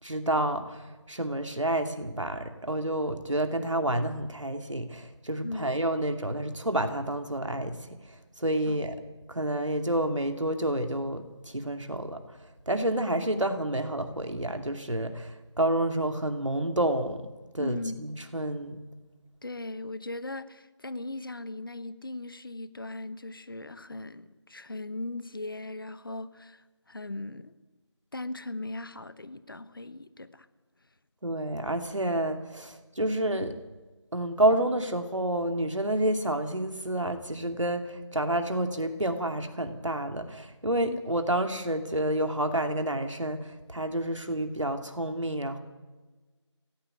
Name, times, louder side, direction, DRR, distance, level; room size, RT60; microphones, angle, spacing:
voice 1, 0.0-9.0 9.3-12.2 12.7-17.2 17.5-18.8 31.2-33.6 34.1-45.6, right 1 dB, 90° right, 6 dB, 2.6 m, -29 dB
voice 2, 17.6-18.0 19.4-27.5 28.1-30.5 40.8-41.0, left 2 dB, 45° left, 14 dB, 1.1 m, -38 dB
17.0 x 16.0 x 9.5 m, 1.3 s
figure-of-eight pair, 170°, 15 cm